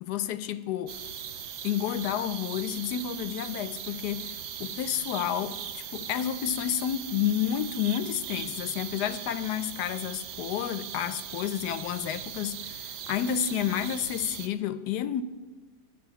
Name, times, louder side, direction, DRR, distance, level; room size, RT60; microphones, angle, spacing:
voice 1, 0.0-1.0 1.6-4.3 4.6-15.2, left 10 dB, 75° left, 1.1 m, -30 dB
sound 1, 0.9-14.5, right 9 dB, 70° right, 1.2 m, -39 dB
10.0 x 6.7 x 9.1 m
omnidirectional pair, 1.8 m